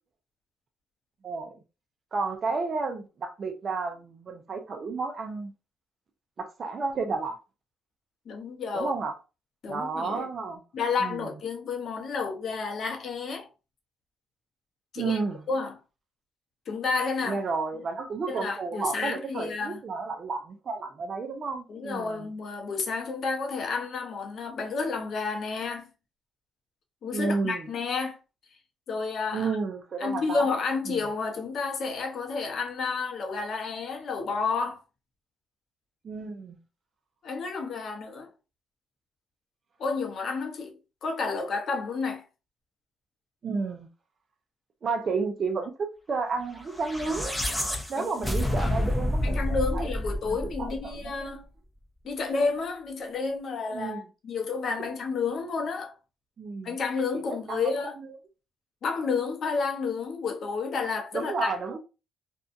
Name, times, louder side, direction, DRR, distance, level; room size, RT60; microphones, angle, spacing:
voice 1, 1.2-1.5 2.1-5.5 6.4-7.4 8.7-9.1 9.7-10.6 11.0-11.3 15.0-15.4 17.2-22.3 27.1-27.7 29.3-30.5 30.9-31.0 36.0-36.6 43.4-43.9 44.8-45.7 46.1-47.3 47.9-49.4 49.7-49.9 50.3-51.4 53.7-54.0 56.4-56.8 57.1-57.2 57.5-57.6 58.0-58.1 61.1-61.8, right 4 dB, 45° right, 0.5 m, -31 dB
voice 2, 8.3-8.9 9.6-10.3 10.7-13.5 14.9-15.2 15.5-15.8 16.7-17.4 18.3-19.8 21.7-25.9 27.0-28.2 28.9-29.6 30.0-34.8 37.2-38.3 39.8-40.7 41.0-42.2 47.9-48.7 49.2-51.4 52.0-55.9 56.6-58.0 58.8-61.5, left 4 dB, 60° left, 0.7 m, -31 dB
sound 1, 46.7-51.1, left 1 dB, 5° left, 0.6 m, -29 dB
2.6 x 2.2 x 2.5 m
cardioid pair, 90°, 0 cm